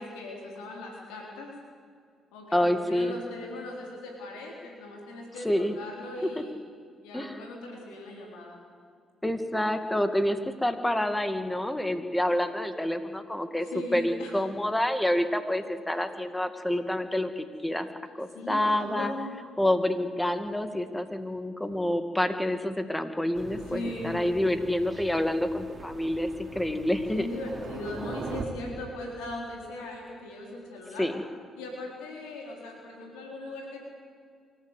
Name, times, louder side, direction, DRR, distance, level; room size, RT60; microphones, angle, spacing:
voice 1, 0.0-1.5 2.3-6.5 7.0-8.6 13.6-14.3 18.3-19.3 23.5-24.2 26.9-31.1 31.6-33.8, left 2 dB, 90° left, 0 dB, 4.0 m, -39 dB
voice 2, 2.5-3.1 5.4-5.7 7.1-7.4 9.2-13.7 13.9-17.9 18.2-19.1 19.6-27.3 31.0-31.2, left 1 dB, 10° left, 9 dB, 2.2 m, -28 dB
Thunder, 23.3-28.4, right 4 dB, 35° right, 2.8 m, -42 dB
24.5 x 14.5 x 8.3 m, 2.2 s
supercardioid pair, 65°, 0 cm